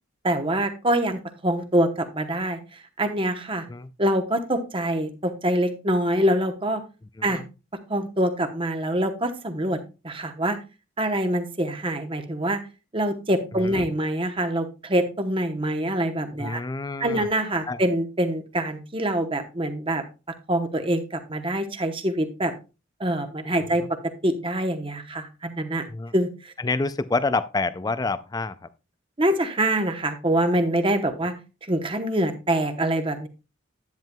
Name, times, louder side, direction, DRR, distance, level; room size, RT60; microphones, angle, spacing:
voice 1, 0.2-3.6 4.0-6.8 7.2-7.4 7.9-9.8 10.0-10.6 11.0-12.6 12.9-16.6 17.0-20.0 20.5-22.5 23.0-23.8 24.2-25.8 26.1-26.5 29.2-31.3 31.6-33.3, right 1 dB, 25° right, 7 dB, 0.9 m, -25 dB
voice 2, 16.4-17.3 17.7-17.8 25.9-26.1 26.6-28.6, left 3 dB, 20° left, 15 dB, 0.3 m, -27 dB
10.5 x 9.0 x 2.3 m, 0.30 s
head